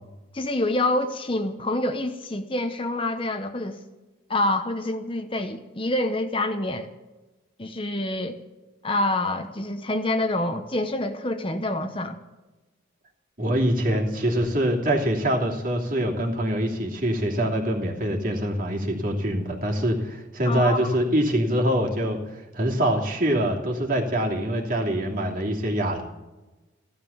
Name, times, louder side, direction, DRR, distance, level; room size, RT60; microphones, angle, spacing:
voice 1, 0.3-3.8 4.3-6.9 7.6-8.4 8.8-12.2 20.4-20.9, left 1 dB, 25° left, 7 dB, 0.9 m, -27 dB
voice 2, 13.4-26.0, right 1 dB, 45° right, 0 dB, 2.8 m, -24 dB
16.0 x 12.5 x 7.2 m, 1.1 s
head